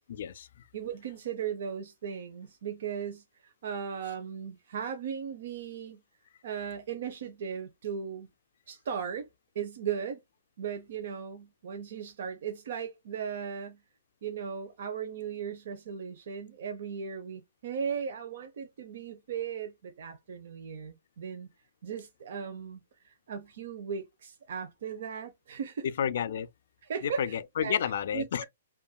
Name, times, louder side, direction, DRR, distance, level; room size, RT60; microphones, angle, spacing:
voice 1, 0.1-0.5 26.0-26.5 27.0-28.4, left 8 dB, 55° left, 0.4 m, -30 dB
voice 2, 0.7-6.0 6.4-8.3 8.7-9.3 9.5-10.2 10.6-13.8 14.2-21.5 21.8-25.9 26.8-27.8 28.1-28.4, right 7 dB, 55° right, 0.7 m, -37 dB
5.2 x 2.6 x 2.2 m
hypercardioid pair, 170°, 0 cm